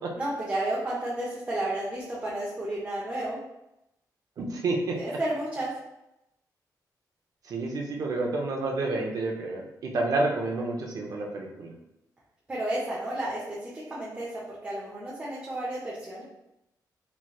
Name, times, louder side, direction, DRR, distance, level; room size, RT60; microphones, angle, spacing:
voice 1, 0.2-3.4 5.0-5.7 12.5-14.3 14.6-16.2, right 1 dB, 20° right, -7 dB, 0.6 m, -32 dB
voice 2, 4.4-5.2 7.4-11.7, right 2 dB, 60° right, 0 dB, 0.6 m, -29 dB
3.1 x 3.0 x 2.3 m, 0.88 s
wide cardioid pair, 145°, 7 cm